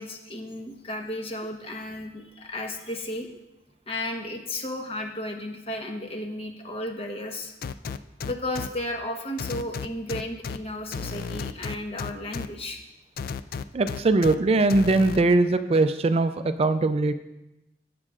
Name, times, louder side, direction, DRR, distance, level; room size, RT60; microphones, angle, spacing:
voice 1, 0.0-3.3 3.9-7.5 8.2-12.8, left 1 dB, 35° left, 3 dB, 1.1 m, -34 dB
sound 1, 7.6-8.7 9.4-10.6 10.9-12.5 13.2-14.3 14.7-15.2, left 5 dB, 55° left, 0.3 m, -33 dB
voice 2, 13.7-17.1, right 2 dB, 35° right, 10 dB, 0.4 m, -21 dB
16.0 x 7.6 x 2.5 m, 0.95 s
head